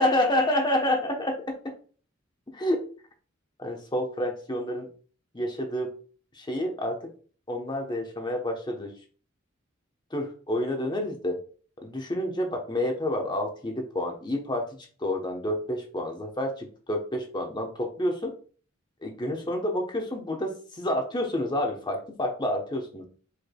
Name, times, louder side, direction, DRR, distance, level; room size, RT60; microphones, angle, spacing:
voice 1, 0.0-1.6 2.5-2.9 3.6-4.9 5.3-5.9 6.3-7.1 7.5-8.9 10.1-11.4 11.8-14.7 15.0-18.3 19.0-23.0, left 1 dB, 20° left, 3 dB, 1.0 m, -29 dB
4.9 x 4.7 x 2.3 m, 0.40 s
head